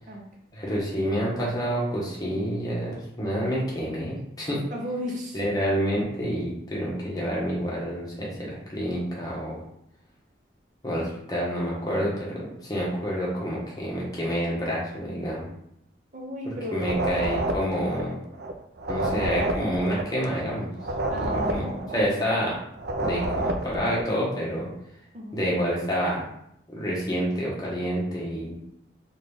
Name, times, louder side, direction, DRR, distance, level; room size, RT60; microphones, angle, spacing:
voice 1, 0.5-4.6 5.3-9.6 10.8-15.5 16.7-18.2 18.9-20.7 21.2-22.6 23.0-24.7 25.3-26.2 26.7-28.5, equal, 20° left, -5 dB, 1.1 m, -28 dB
voice 2, 4.7-5.4 16.1-17.0 21.1-22.0 25.1-25.4, equal, 40° right, -1 dB, 0.8 m, -34 dB
sound 1, 16.8-24.1, right 1 dB, 60° right, 0.4 m, -29 dB
3.9 x 2.6 x 3.4 m, 0.74 s
head